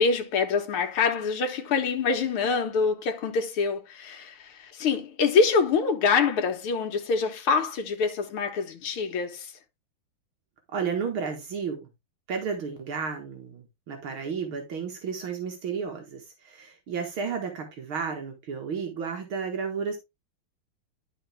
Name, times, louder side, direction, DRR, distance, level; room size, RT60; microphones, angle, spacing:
voice 1, 0.0-9.5, left 5 dB, 85° left, 2.1 m, -25 dB
voice 2, 10.7-11.9 12.3-20.0, right 6 dB, 75° right, 2.3 m, -32 dB
11.0 x 4.5 x 3.4 m
omnidirectional pair, 2.3 m